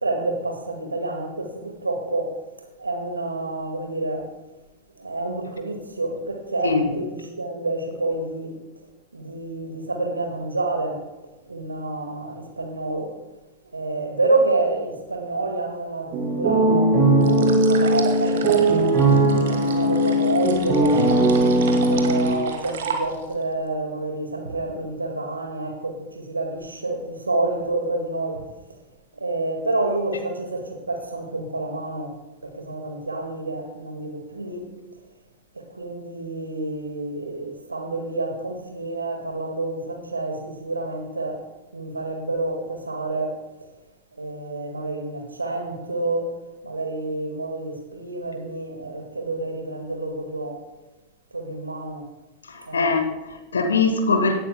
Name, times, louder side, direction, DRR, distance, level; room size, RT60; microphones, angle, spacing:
voice 1, 0.0-2.4 2.8-4.3 5.0-8.6 9.1-11.0 11.5-13.2 13.7-21.1 21.9-28.8 29.1-32.1 32.4-34.7 35.5-41.4 41.7-43.4 44.2-50.6 51.3-52.1 52.6-52.8, right 2 dB, 80° right, 1.8 m, -28 dB
sound 1, 16.1-22.3, right 1 dB, 40° right, 2.9 m, -19 dB
sound 2, 17.2-23.4, right 6 dB, 60° right, 1.5 m, -34 dB
voice 2, 52.5-54.4, left 4 dB, 70° left, 1.1 m, -22 dB
17.5 x 11.0 x 2.2 m
figure-of-eight pair, 90°, 0 cm